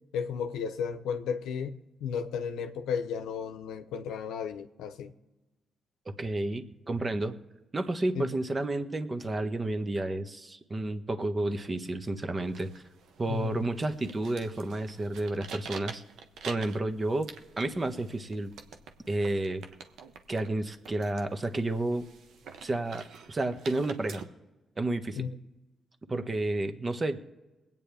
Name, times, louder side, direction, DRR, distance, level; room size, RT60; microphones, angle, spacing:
voice 1, 0.1-5.1 8.1-8.3 13.3-13.7 25.1-25.4, left 7 dB, 80° left, 0.8 m, -34 dB
voice 2, 6.1-7.4 7.7-12.8 13.2-16.0 16.5-17.3 17.6-18.5 19.1-19.6 20.3-22.1 22.6-24.2 24.8-25.2 26.1-27.2, right 2 dB, 35° right, 1.4 m, -31 dB
sound 1, 12.4-24.2, right 5 dB, 75° right, 1.0 m, -47 dB
23.0 x 8.9 x 3.5 m
hypercardioid pair, 45°, 0 cm